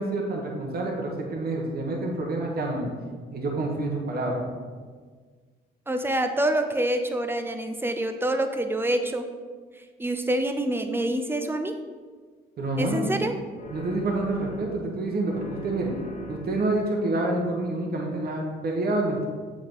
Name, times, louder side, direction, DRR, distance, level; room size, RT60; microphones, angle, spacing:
voice 1, 0.0-2.9 3.3-4.4 12.6-13.3 13.7-15.9 16.3-19.3, right 2 dB, 50° right, 0 dB, 1.2 m, -28 dB
voice 2, 5.9-9.3 10.0-11.8 12.8-13.3, right 1 dB, 10° right, 7 dB, 0.6 m, -26 dB
sound 1, 13.5-15.0 15.3-16.8, left 2 dB, 40° left, 0.8 m, -42 dB
7.8 x 3.8 x 3.7 m, 1.5 s
cardioid pair, 90°, 20 cm